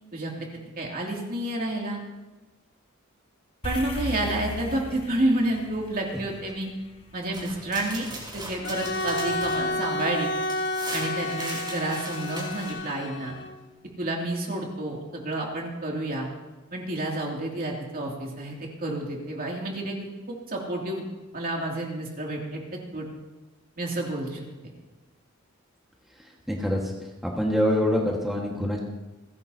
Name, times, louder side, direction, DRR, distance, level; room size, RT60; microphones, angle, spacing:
voice 1, 0.1-0.5 0.8-2.0 3.6-6.7 7.1-8.1 8.3-10.3 10.9-13.4 14.0-16.3 16.7-21.0 21.3-22.6 22.9-23.1 23.8-24.4, right 1 dB, 45° right, -1 dB, 2.6 m, -30 dB
sound 1, 3.6-8.1, left 1 dB, 25° left, 1.4 m, -37 dB
sound 2, 7.3-12.7, right 2 dB, 20° right, 4.5 m, -39 dB
Bowed string instrument, 8.6-13.6, left 2 dB, 60° left, 1.1 m, -30 dB
voice 2, 26.5-26.8 27.2-28.8, equal, ahead, -2 dB, 1.6 m, -25 dB
29.0 x 10.5 x 2.8 m, 1.1 s
head